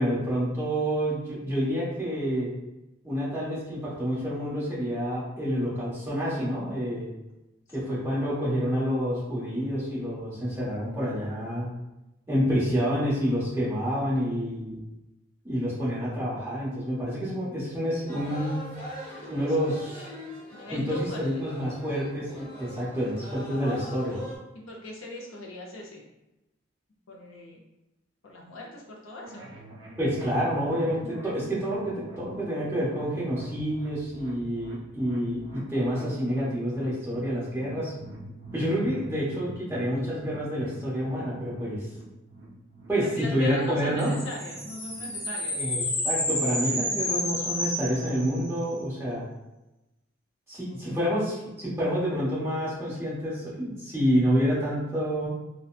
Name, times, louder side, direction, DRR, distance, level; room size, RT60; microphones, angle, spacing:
voice 1, 0.0-2.5 3.0-7.1 7.7-11.7 12.3-14.8 15.4-18.7 19.3-20.1 20.7-24.2 30.0-37.9 38.5-41.9 42.9-44.2 45.5-49.2 50.5-55.3, equal, 15° right, -9 dB, 1.2 m, -28 dB
sound 1, 18.1-24.4, equal, 25° left, 1.1 m, -42 dB
voice 2, 20.5-21.5 24.5-26.0 27.1-27.6 28.2-29.5 42.9-45.6 50.7-51.3, left 2 dB, 80° left, -2 dB, 0.7 m, -40 dB
sound 2, 29.2-45.1, right 1 dB, 65° right, 0.7 m, -46 dB
sound 3, 44.0-48.6, left 1 dB, 45° left, 1.0 m, -30 dB
3.9 x 2.2 x 2.4 m, 0.96 s
head